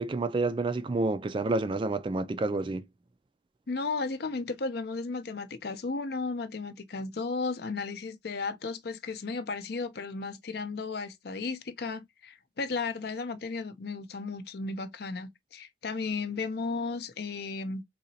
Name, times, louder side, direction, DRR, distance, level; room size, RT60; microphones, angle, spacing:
voice 1, 0.0-2.8, right 3 dB, 25° right, 0.3 m, -29 dB
voice 2, 3.7-17.8, left 4 dB, 60° left, 0.5 m, -34 dB
3.9 x 2.9 x 2.7 m
head